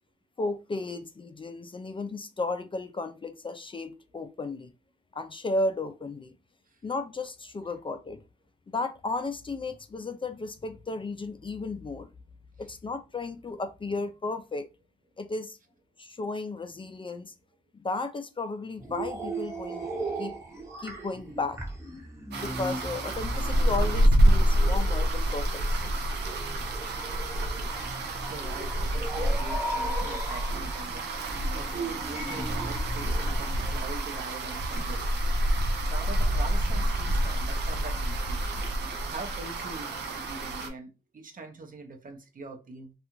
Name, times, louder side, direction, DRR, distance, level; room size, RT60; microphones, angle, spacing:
voice 1, 0.4-4.7 5.1-6.3 6.8-8.2 8.7-12.1 12.6-14.7 15.2-15.6 16.0-17.3 17.7-19.9 20.2-20.3 20.8-21.6 22.4-25.9, left 3 dB, 30° left, 0.4 m, -34 dB
sound 1, 18.8-33.4, right 2 dB, 15° right, 1.0 m, -37 dB
sound 2, 22.3-40.7, right 1 dB, 85° right, 0.5 m, -27 dB
voice 2, 28.3-31.0 31.5-35.0 35.9-38.4 39.0-42.9, right 3 dB, 55° right, 0.7 m, -43 dB
2.4 x 2.4 x 2.9 m
cardioid pair, 50°, 17 cm